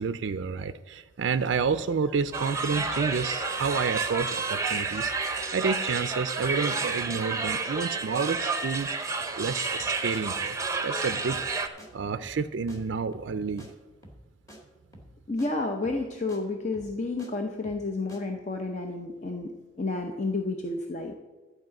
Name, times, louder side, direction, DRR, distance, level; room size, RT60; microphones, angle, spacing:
voice 1, 0.0-8.9 9.4-10.6 10.8-11.4 11.9-13.7, right 5 dB, 65° right, 11 dB, 0.4 m, -30 dB
sound 1, 2.3-11.7, right 4 dB, 15° right, 0.7 m, -30 dB
sound 2, 11.3-11.5 11.8-11.9 12.2-12.4 12.7-12.8 13.1-13.3 13.6-13.7 14.0-14.2 14.5-14.6 14.9-15.1 15.4-15.5 15.8-16.0 16.3-16.4 16.7-17.3 17.6-17.8 18.1-18.2, equal, 15° left, 1.6 m, -49 dB
voice 2, 15.3-21.1, left 3 dB, 35° left, 3 dB, 0.7 m, -31 dB
12.0 x 4.9 x 7.5 m, 1.3 s
head